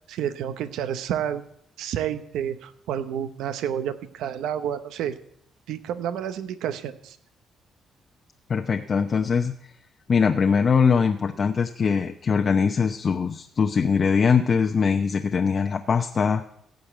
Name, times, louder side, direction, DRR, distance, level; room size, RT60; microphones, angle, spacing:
voice 1, 0.1-1.4 1.8-5.2 5.7-7.2, right 9 dB, 85° right, 11 dB, 0.9 m, -30 dB
voice 2, 8.5-9.5 10.1-16.4, left 6 dB, 45° left, 6 dB, 0.7 m, -22 dB
16.0 x 5.3 x 8.1 m, 0.71 s
cardioid pair, 90°, 0 cm